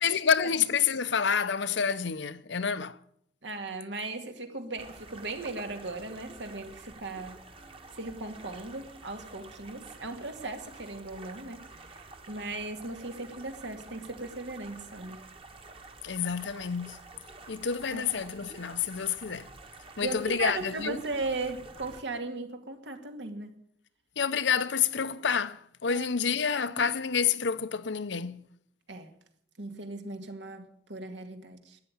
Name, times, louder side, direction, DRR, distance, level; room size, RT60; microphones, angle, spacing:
voice 1, 0.0-3.0 16.0-17.0 17.5-19.5 20.0-21.0 24.2-28.5, left 6 dB, 75° left, 0.8 m, -28 dB
voice 2, 3.4-7.4 7.9-15.2 17.9-18.1 20.0-23.5 25.9-26.1 26.7-26.8 28.9-29.1 29.6-31.8, right 3 dB, 75° right, 2.2 m, -37 dB
sound 1, 4.8-22.0, right 3 dB, 30° right, 1.4 m, -49 dB
13.0 x 9.1 x 9.9 m
head